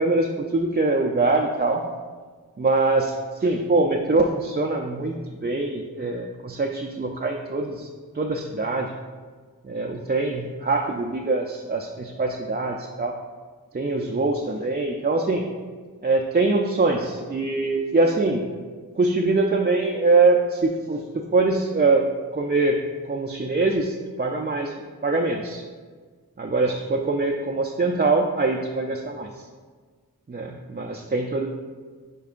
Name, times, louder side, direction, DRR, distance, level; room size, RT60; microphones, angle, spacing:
voice 1, 0.0-1.8 2.6-3.1 3.4-5.2 5.4-7.9 8.1-8.9 9.6-13.1 13.7-15.4 16.0-18.4 19.0-22.0 22.3-22.8 23.0-24.7 25.0-25.6 26.4-29.5 30.3-31.5, right 3 dB, 30° right, 1 dB, 0.4 m, -23 dB
10.5 x 4.6 x 2.5 m, 1.5 s
wide cardioid pair, 65°, 36 cm